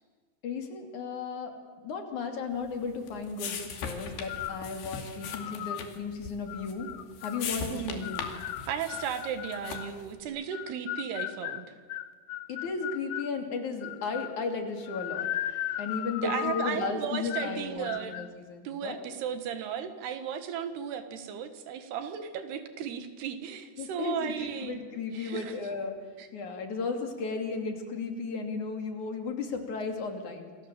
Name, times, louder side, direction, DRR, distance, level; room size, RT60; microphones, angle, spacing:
voice 1, 0.4-1.6 1.8-6.9 7.2-8.3 12.5-15.3 15.8-19.0 23.8-26.0 26.3-30.7, left 4 dB, 50° left, 4 dB, 4.0 m, -35 dB
sound 1, 2.6-10.1, left 6 dB, 85° left, 4.6 m, -40 dB
sound 2, 4.3-4.7 5.2-5.9 6.5-7.5 8.0-9.9 10.5-13.3 13.8-14.4 14.9-16.8 17.3-17.6 17.8-18.3, left 13 dB, 70° left, 2.1 m, -37 dB
voice 2, 7.7-8.0 8.7-11.7 16.2-18.2 18.7-24.8 25.1-25.5 26.2-26.3, right 8 dB, 85° right, 9 dB, 3.7 m, -35 dB
28.5 x 26.0 x 7.6 m, 1.5 s
omnidirectional pair, 4.6 m